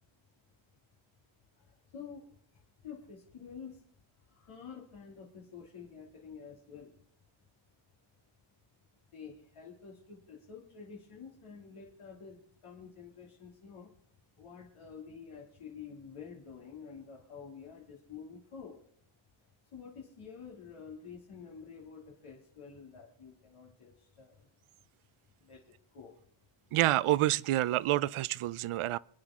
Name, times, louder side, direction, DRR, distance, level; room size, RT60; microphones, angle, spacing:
voice 1, 1.5-3.8 4.2-6.9 9.1-13.9 14.3-18.8 19.7-24.5 25.4-26.1, left 6 dB, 85° left, 2.7 m, -49 dB
voice 2, 26.7-29.0, right 15 dB, 80° right, 0.6 m, -28 dB
26.5 x 10.0 x 3.7 m
wide cardioid pair, 155°, 49 cm